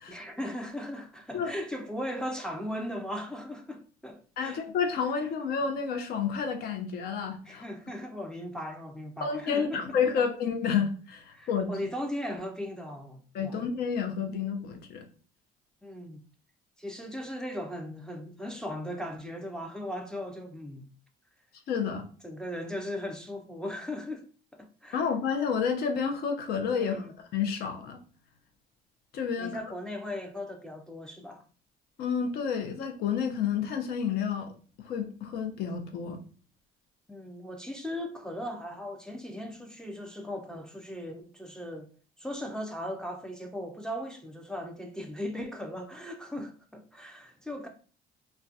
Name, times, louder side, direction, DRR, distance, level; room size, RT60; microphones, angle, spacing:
voice 1, 0.1-4.6 5.2-5.3 7.5-10.3 11.3-13.6 15.8-16.2 16.8-20.9 22.2-24.3 24.5-25.1 26.7-27.1 29.4-31.4 37.1-41.9 42.2-47.7, left 1 dB, 5° left, 0.4 m, -38 dB
voice 2, 4.4-7.6 9.2-11.7 13.3-15.1 21.7-22.0 24.9-27.0 27.3-28.0 29.1-29.6 32.0-34.5 34.8-36.2, left 6 dB, 65° left, 0.5 m, -30 dB
2.2 x 2.1 x 2.6 m
cardioid pair, 110°, 17 cm